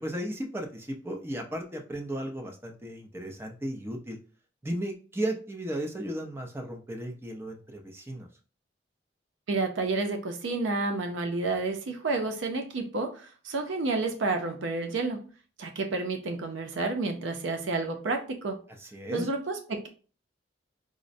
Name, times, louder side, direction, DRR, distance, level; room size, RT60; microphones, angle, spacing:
voice 1, 0.0-4.2 4.6-8.3 18.8-19.3, right 1 dB, 15° right, 2 dB, 0.5 m, -35 dB
voice 2, 9.5-15.3 15.6-18.6 19.1-19.9, right 3 dB, 80° right, 5 dB, 0.5 m, -30 dB
4.9 x 2.0 x 2.6 m, 0.38 s
head